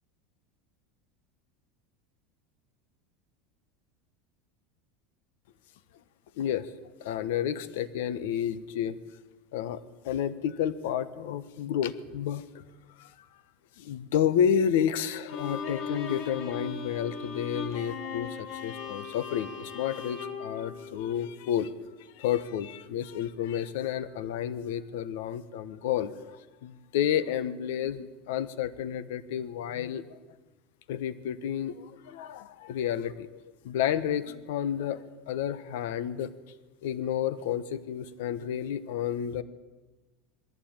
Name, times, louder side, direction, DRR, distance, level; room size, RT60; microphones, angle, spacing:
voice 1, 6.4-6.7 7.0-9.0 9.5-12.6 13.0-13.1 13.8-21.7 22.1-30.2 30.9-36.3 36.8-39.4, left 9 dB, 75° left, 14 dB, 1.2 m, -31 dB
Bowed string instrument, 15.3-21.5, left 5 dB, 40° left, 2.6 m, -38 dB
21.5 x 15.0 x 9.0 m, 1.2 s
supercardioid pair, 170°, 0 cm